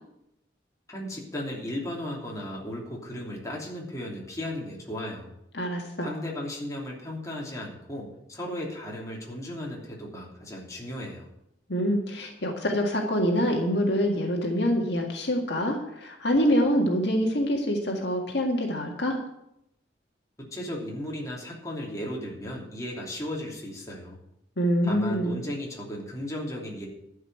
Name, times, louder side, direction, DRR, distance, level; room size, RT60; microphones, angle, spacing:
voice 1, 0.9-5.3 6.0-11.3 20.4-24.2 24.8-26.9, left 1 dB, 15° left, -3 dB, 2.9 m, -35 dB
voice 2, 5.5-6.1 11.7-19.2 24.6-25.4, equal, 60° left, 1 dB, 1.9 m, -25 dB
12.0 x 5.7 x 9.1 m, 0.82 s
head